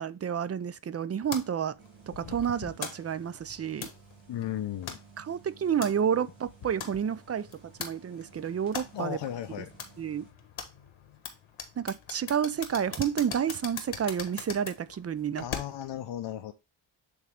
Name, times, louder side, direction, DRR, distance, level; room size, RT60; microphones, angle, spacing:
voice 1, 0.0-1.8 2.2-3.9 5.2-9.2 10.0-10.2 11.8-15.4, right 8 dB, 35° right, 0.4 m, -30 dB
sound 1, 1.3-16.0, left 7 dB, 85° left, 1.4 m, -43 dB
sound 2, 1.8-10.3, right 7 dB, 80° right, 2.5 m, -56 dB
voice 2, 4.3-5.0 8.9-9.7 15.4-16.5, left 11 dB, 65° left, 0.7 m, -35 dB
8.0 x 3.6 x 3.6 m
cardioid pair, 90°, 47 cm